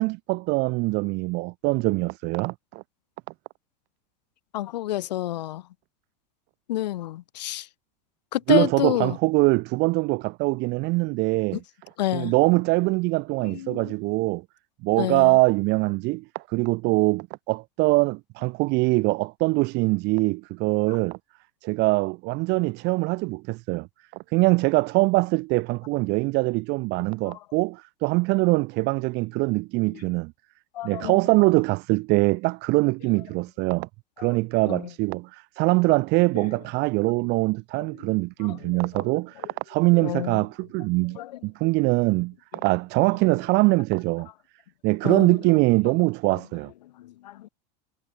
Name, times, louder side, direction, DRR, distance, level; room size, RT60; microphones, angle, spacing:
voice 1, 0.0-2.8 8.5-11.6 12.1-14.4 14.8-21.2 21.6-23.9 24.3-30.3 30.8-33.9 34.2-42.3 42.6-44.3 44.8-46.7, right 24 dB, 55° right, 4.1 m, -23 dB
voice 2, 4.5-5.6 6.7-7.7 8.3-9.2 11.5-11.6 12.0-12.3 13.5-13.9 15.0-15.4 27.3-27.4 29.9-30.0 30.7-31.2 34.2-34.4 34.7-34.9 36.4-36.5 38.4-39.0 40.0-40.4 41.2-41.3 45.0-45.4 47.0-47.5, left 14 dB, 85° left, 3.5 m, -29 dB
supercardioid pair, 125°, 21 cm